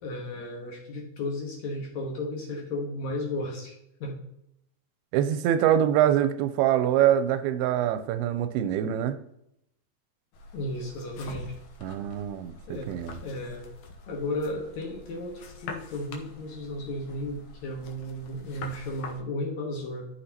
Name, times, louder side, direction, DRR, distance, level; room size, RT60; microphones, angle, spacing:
voice 1, 0.0-4.2 10.5-11.5 12.7-12.9 13.2-13.7 14.1-20.1, left 1 dB, 60° left, -1 dB, 2.2 m, -34 dB
voice 2, 5.1-9.2 11.8-12.5 12.9-13.2, right 10 dB, 90° right, 11 dB, 2.5 m, -24 dB
sound 1, 10.3-19.2, left 3 dB, 80° left, 2.8 m, -45 dB
13.0 x 6.2 x 2.9 m, 0.77 s
omnidirectional pair, 4.4 m